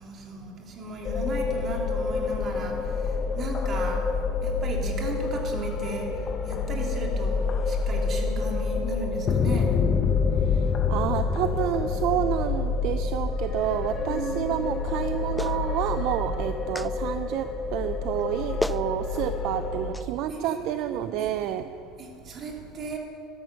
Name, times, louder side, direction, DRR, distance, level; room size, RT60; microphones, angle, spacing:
voice 1, 0.0-4.2 4.4-9.8 14.1-14.6 20.3-21.3 22.0-23.0, right 2 dB, 40° right, 1 dB, 2.8 m, -36 dB
sound 1, 1.0-20.0, left 4 dB, 35° left, 0.9 m, -27 dB
voice 2, 10.9-21.6, right 11 dB, 65° right, 10 dB, 0.5 m, -29 dB
Clapping, 15.4-15.6 16.7-16.9 18.2-18.3 18.6-18.9 19.9-20.1, left 1 dB, 5° left, 0.3 m, -30 dB
13.5 x 12.5 x 6.6 m, 2.5 s
supercardioid pair, 130°, 0 cm